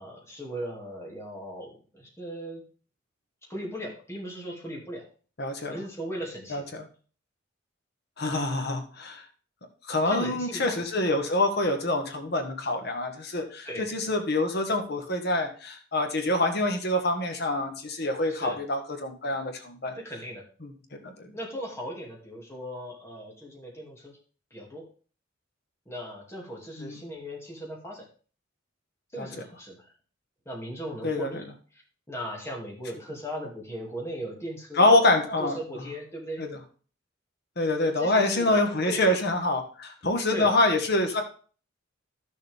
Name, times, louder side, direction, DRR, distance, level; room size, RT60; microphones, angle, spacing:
voice 1, 0.0-2.6 3.5-5.0 5.7-6.6 10.0-10.8 13.6-13.8 18.3-18.6 19.9-20.4 21.3-24.2 24.5-24.8 25.9-28.1 29.1-29.9 30.5-31.5 31.7-31.8 32.1-35.1 35.4-36.4 37.8-39.2 40.3-40.6, equal, 15° left, -2 dB, 2.5 m, -38 dB
voice 2, 5.4-5.8 6.5-6.8 8.2-9.2 9.9-19.9 20.6-21.3 26.8-27.0 29.2-29.3 31.0-31.3 34.8-35.6 36.4-36.5 37.6-41.2, left 2 dB, 55° left, 4 dB, 1.5 m, -26 dB
13.0 x 6.7 x 3.5 m, 0.40 s
head